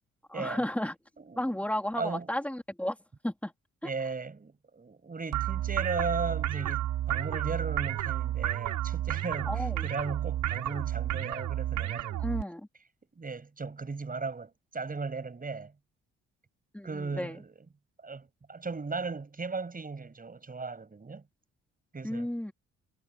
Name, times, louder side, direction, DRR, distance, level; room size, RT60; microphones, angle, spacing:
voice 1, 0.3-1.0 1.4-3.0 3.2-3.5 3.8-3.9 9.5-9.9 12.2-12.7 16.7-17.4 22.0-22.5, left 1 dB, 5° left, 3.9 m, -33 dB
voice 2, 2.0-2.3 3.8-12.2 13.1-15.7 16.8-17.5 18.0-21.2 21.9-22.3, right 4 dB, 30° right, 7.9 m, -36 dB
sound 1, 5.3-12.4, right 13 dB, 85° right, 6.6 m, -31 dB
cardioid pair, 90°, 30 cm